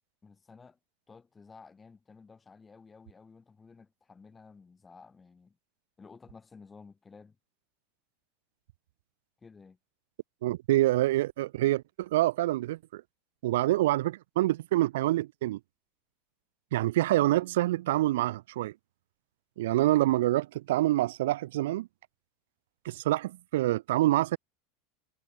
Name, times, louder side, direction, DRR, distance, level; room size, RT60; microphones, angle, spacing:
voice 1, 0.2-0.8 1.1-5.6 6.0-7.4 9.4-9.8, left 4 dB, 15° left, 1.6 m, -53 dB
voice 2, 10.4-13.0 13.4-15.6 16.7-18.7 19.6-21.9 22.9-24.4, right 16 dB, 80° right, 0.3 m, -26 dB
supercardioid pair, 130°, 0 cm